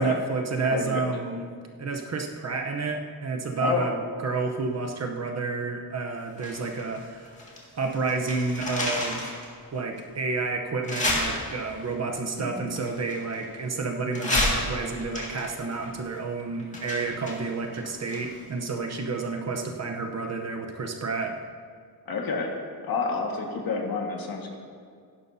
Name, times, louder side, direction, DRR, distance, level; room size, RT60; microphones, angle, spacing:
voice 1, 0.0-1.4 1.8-7.5 7.7-9.3 9.7-21.4, right 4 dB, 45° right, 2 dB, 0.8 m, -30 dB
voice 2, 0.7-1.0 3.6-3.9 12.4-12.8 22.1-22.5 22.8-24.5, left 4 dB, 65° left, 1 dB, 1.7 m, -29 dB
sound 1, 6.4-7.6 7.9-9.5 10.0-10.1 10.8-11.9 12.7-13.7 14.1-18.5 18.8-18.9, left 1 dB, 20° left, 2.0 m, -31 dB
16.5 x 11.0 x 2.7 m, 2.2 s
wide cardioid pair, 155°, 38 cm